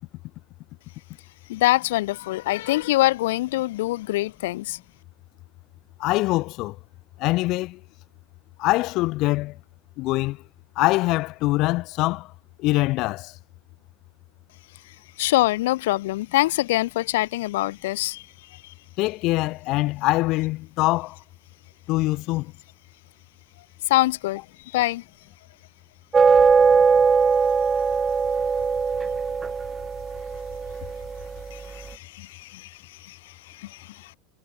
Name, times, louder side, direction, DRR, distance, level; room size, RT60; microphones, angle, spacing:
voice 1, 1.5-4.8 15.2-18.7 23.9-25.0 27.8-27.9 31.5-34.1, left 17 dB, 85° left, 2.2 m, -25 dB
voice 2, 6.0-6.8 7.2-7.8 8.6-9.6 10.0-10.4 10.8-12.3 12.6-13.4 19.0-21.2 21.9-22.5, left 20 dB, 45° left, 7.4 m, -23 dB
sound 1, 26.1-31.6, right 5 dB, 15° right, 2.0 m, -20 dB
supercardioid pair, 150°, 0 cm